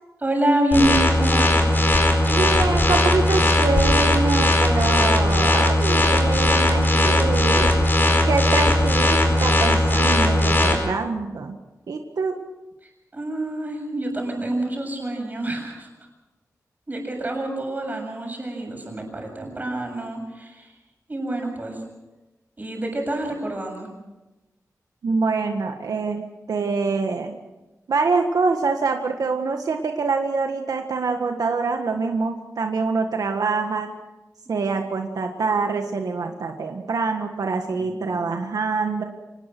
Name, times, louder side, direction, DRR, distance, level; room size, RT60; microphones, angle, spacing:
voice 1, 0.2-1.7 12.8-15.9 16.9-20.7 21.1-21.8 22.6-23.9 37.7-38.3, right 1 dB, 30° right, 2 dB, 7.2 m, -27 dB
sound 1, 0.7-10.7, left 1 dB, 35° left, 4.8 m, -18 dB
voice 2, 2.3-7.7 8.3-11.6 11.9-12.3 25.0-27.4 27.9-33.9 34.5-39.0, right 4 dB, 85° right, 4 dB, 1.7 m, -25 dB
25.5 x 19.5 x 6.1 m, 1.1 s
wide cardioid pair, 125°, 6 cm